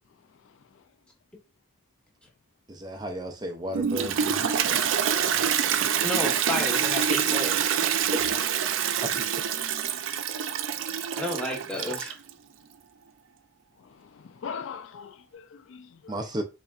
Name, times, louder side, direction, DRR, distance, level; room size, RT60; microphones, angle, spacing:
voice 1, 2.7-4.6 8.1-8.2 9.0-9.2 16.1-16.4, equal, 20° right, 0.4 m, -33 dB
Toilet flush, 3.7-12.3, right 8 dB, 90° right, 0.4 m, -26 dB
voice 2, 6.0-7.8 11.2-12.2, left 1 dB, 5° left, 0.9 m, -32 dB
voice 3, 14.0-16.2, left 6 dB, 85° left, 0.4 m, -40 dB
4.1 x 3.3 x 2.3 m
head